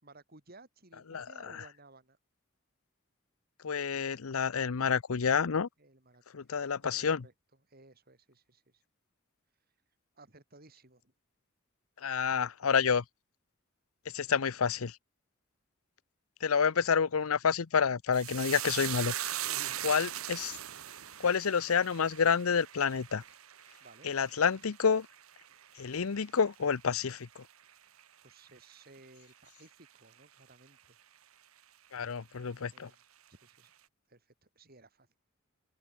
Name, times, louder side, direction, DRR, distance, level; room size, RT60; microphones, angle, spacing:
voice 1, 0.0-2.2 5.8-7.3 7.7-8.8 10.1-11.1 14.3-14.4 19.4-20.0 23.8-24.1 28.2-31.0 32.7-33.0 33.3-33.7 34.1-35.2, right 2 dB, 45° right, 4.0 m, -58 dB
voice 2, 1.1-1.6 3.6-5.7 6.3-7.2 12.0-13.0 14.1-15.0 16.4-19.4 19.8-20.6 21.2-23.2 24.0-25.1 25.8-27.4 31.9-32.9, left 6 dB, 80° left, 0.7 m, -29 dB
sound 1, 18.1-26.7 27.0-27.7 28.0-28.2, right 12 dB, 85° right, 1.3 m, -40 dB
open air
head